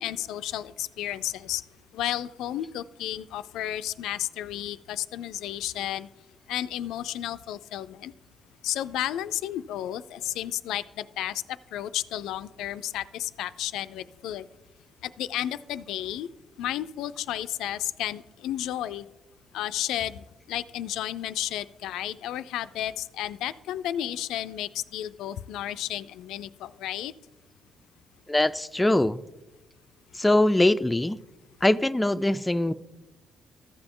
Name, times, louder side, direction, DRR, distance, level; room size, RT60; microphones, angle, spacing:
voice 1, 0.0-1.6 1.9-6.1 6.5-8.1 8.6-14.5 15.0-16.3 16.6-19.1 19.5-27.1, left 12 dB, 90° left, 14 dB, 0.3 m, -32 dB
voice 2, 28.3-29.2 30.2-31.2 31.6-32.7, left 1 dB, 10° left, 12 dB, 0.3 m, -22 dB
14.0 x 6.9 x 3.7 m, 1.1 s
cardioid pair, 90°, 0 cm